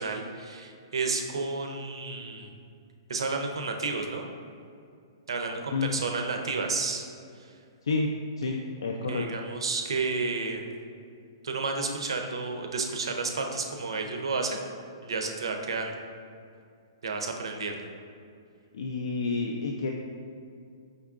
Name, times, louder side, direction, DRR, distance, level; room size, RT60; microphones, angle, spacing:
voice 1, 0.0-2.6 3.1-4.2 5.3-7.1 7.4-7.5 9.1-10.7 11.4-14.6 15.0-15.9 17.0-17.9, right 4 dB, 85° right, 4 dB, 0.5 m, -31 dB
voice 2, 7.8-9.2 18.7-19.9, left 3 dB, 85° left, 0 dB, 0.3 m, -30 dB
5.2 x 3.6 x 2.4 m, 2.4 s
hypercardioid pair, 140°, 3 cm